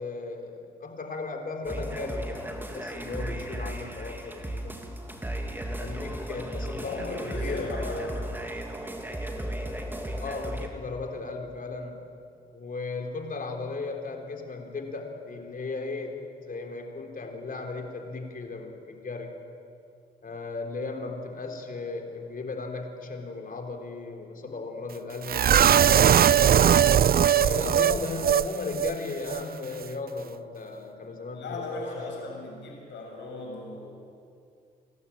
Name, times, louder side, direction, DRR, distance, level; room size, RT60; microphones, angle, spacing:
voice 1, 0.0-4.7 5.7-7.8 10.2-12.1 12.5-19.3 20.2-26.1 27.3-32.1, left 3 dB, 50° left, 3 dB, 3.8 m, -36 dB
sound 1, 1.6-10.7, right 1 dB, 10° right, 3.1 m, -35 dB
voice 2, 6.8-8.1 31.3-33.9, left 2 dB, 75° left, 0 dB, 6.9 m, -37 dB
sound 2, 25.3-28.5 28.7-28.9 29.3-29.4, right 9 dB, 55° right, 0.6 m, -20 dB
28.5 x 12.5 x 8.9 m, 2.4 s
supercardioid pair, 50°, 19 cm